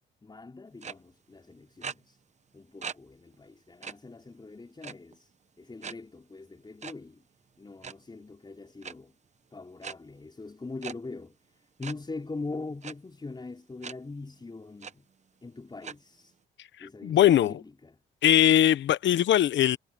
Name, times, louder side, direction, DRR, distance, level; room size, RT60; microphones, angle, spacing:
voice 1, 0.2-2.2 2.5-5.3 5.6-7.2 7.6-9.1 9.5-15.1 15.4-16.3 16.8-18.0, left 3 dB, 20° left, 4.7 m, -42 dB
sound 1, 0.8-0.9 1.8-1.9 2.8-2.9 3.3-3.4 3.8-3.9 4.8-5.2 5.8-5.9 6.8-6.9 7.7-7.9 8.8-8.9 9.8-9.9 10.8-10.9 11.8-11.9 12.8-12.9 13.8-13.9 14.4-14.5 14.8-14.9 15.8-15.9, right 6 dB, 35° right, 0.9 m, -38 dB
voice 2, 16.8-17.5 18.2-19.8, left 11 dB, 70° left, 1.0 m, -21 dB
cardioid pair, 90°, 20 cm